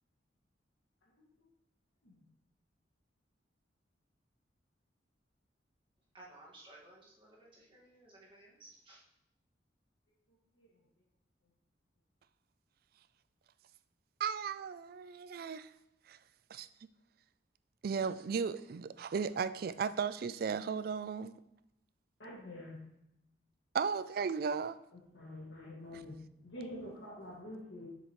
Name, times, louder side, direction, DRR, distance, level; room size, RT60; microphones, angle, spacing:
voice 1, 6.1-9.0, right 1 dB, 30° right, 1.8 m, -57 dB
voice 2, 14.2-15.7 16.1-16.2 16.5-16.7 17.8-21.3 23.7-24.8, right 6 dB, 55° right, 0.3 m, -35 dB
voice 3, 22.2-22.8 25.1-26.1 26.4-27.9, left 1 dB, 80° left, 1.9 m, -46 dB
7.4 x 6.6 x 3.1 m
head